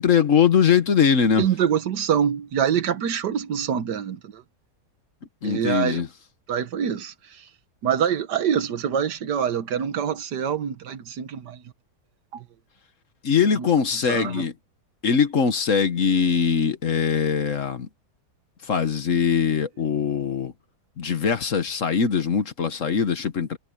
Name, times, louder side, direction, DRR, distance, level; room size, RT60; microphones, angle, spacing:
voice 1, 0.0-1.4 5.4-6.1 13.2-14.5 15.0-17.9 18.6-20.5 21.0-23.6, left 7 dB, 50° left, 1.5 m, -21 dB
voice 2, 1.4-4.4 5.4-6.0 6.5-7.5 7.8-11.6 12.3-12.5 13.6-14.5, right 8 dB, 80° right, 1.7 m, -25 dB
omnidirectional pair, 1.8 m